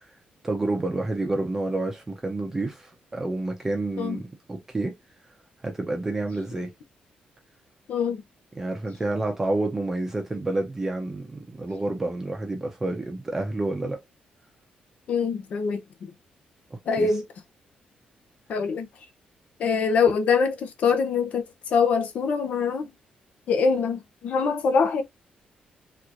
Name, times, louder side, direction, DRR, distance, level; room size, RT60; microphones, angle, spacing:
voice 1, 0.4-4.9 5.6-6.7 8.6-14.0 16.7-17.1, right 2 dB, 15° right, 0.7 m, -29 dB
voice 2, 7.9-8.2 15.1-16.1 16.9-17.2 18.5-18.9 19.6-22.9 23.5-25.0, left 5 dB, 60° left, 0.7 m, -24 dB
3.3 x 3.0 x 2.5 m
wide cardioid pair, 165°, 3 cm